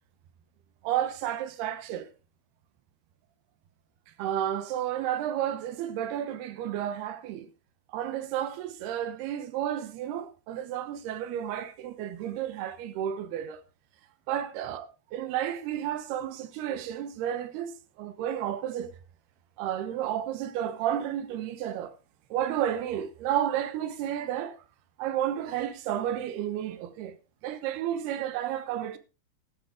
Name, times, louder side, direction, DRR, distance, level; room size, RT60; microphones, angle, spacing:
voice 1, 0.8-2.1 4.2-7.5 7.9-13.6 14.3-14.9 15.1-17.7 18.0-18.9 19.6-21.9 22.3-24.6 25.0-27.2 27.4-29.0, right 11 dB, 80° right, 3.0 m, -31 dB
13.0 x 12.0 x 3.5 m
omnidirectional pair, 4.7 m